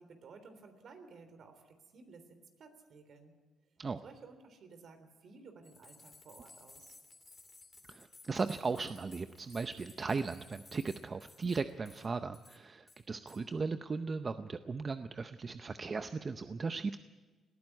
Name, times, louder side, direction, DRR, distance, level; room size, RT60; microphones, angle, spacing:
voice 1, 0.0-3.3 4.0-7.0, right 4 dB, 60° right, 8 dB, 3.4 m, -55 dB
sound 1, 5.6-12.1 12.3-12.6 12.9-13.4, left 3 dB, 25° left, 2.8 m, -58 dB
voice 2, 7.9-17.0, right 4 dB, 35° right, 10 dB, 0.7 m, -37 dB
19.5 x 14.0 x 9.6 m, 1.3 s
cardioid pair, 90°, 0 cm